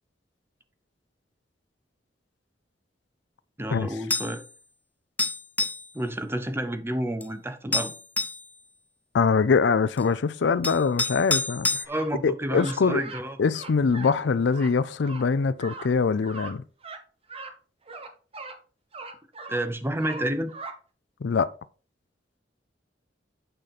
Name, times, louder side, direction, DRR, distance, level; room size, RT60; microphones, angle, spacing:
voice 1, 3.6-4.4 5.9-7.9 11.9-13.4 19.5-20.5, right 1 dB, 15° right, 0.7 m, -30 dB
sound 1, 4.1-4.4 5.2-5.9 7.2-7.3 7.7-8.4 10.0-10.1 10.6-11.9, left 3 dB, 10° left, 0.4 m, -27 dB
voice 2, 9.1-11.8 12.2-13.0 13.4-16.6 21.2-21.5, left 5 dB, 70° left, 0.4 m, -23 dB
sound 2, 11.9-12.1 12.5-13.2 13.5-14.1 14.5-14.7 15.0-15.2 15.6-15.9 16.2-16.5 16.8-17.0 17.3-17.5 17.9-18.6 18.9-19.6 20.0-20.7, right 3 dB, 30° right, 1.0 m, -40 dB
9.0 x 5.0 x 4.1 m
head